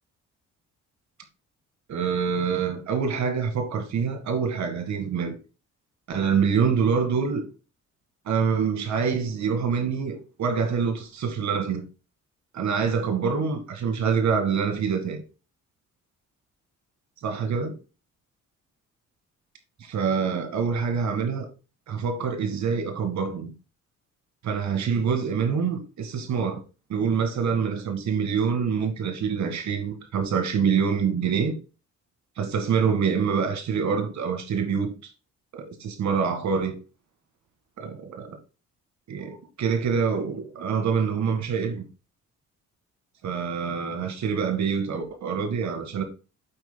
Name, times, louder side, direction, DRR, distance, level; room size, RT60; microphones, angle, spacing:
voice 1, 1.9-5.4 6.1-7.5 8.3-11.8 12.5-15.2 17.2-17.7 19.8-21.5 21.9-23.5 24.4-26.6 26.9-31.5 32.4-34.9 35.5-36.8 37.8-38.4 39.1-41.8 43.2-46.0, right 6 dB, 65° right, 1.8 m, -26 dB
9.1 x 7.9 x 2.2 m
cardioid pair, 90°, 30 cm